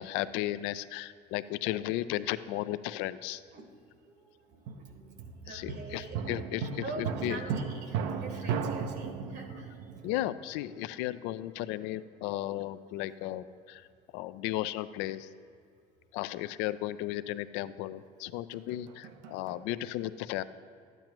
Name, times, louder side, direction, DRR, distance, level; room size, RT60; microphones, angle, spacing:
voice 1, 0.0-3.4 5.5-7.4 10.0-13.9 14.1-15.3 16.1-20.4, left 14 dB, 75° left, 15 dB, 0.4 m, -35 dB
voice 2, 4.0-6.3 6.8-9.8, right 3 dB, 60° right, 5 dB, 1.2 m, -44 dB
sound 1, 4.7-11.0 18.5-19.7, right 6 dB, 75° right, 0.6 m, -36 dB
12.0 x 9.0 x 3.0 m, 2.3 s
hypercardioid pair, 75°, 19 cm